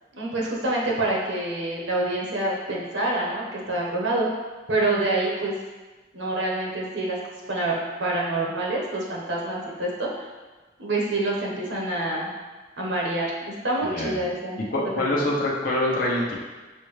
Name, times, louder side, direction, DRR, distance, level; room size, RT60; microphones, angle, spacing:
voice 1, 0.1-4.3 4.7-5.6 6.1-7.2 7.5-10.3 10.8-12.3 12.8-13.3 13.6-15.3, right 2 dB, 85° right, -3 dB, 1.0 m, -27 dB
voice 2, 14.7-16.3, left 1 dB, 50° left, -4 dB, 0.8 m, -25 dB
6.6 x 2.2 x 3.2 m, 1.3 s
head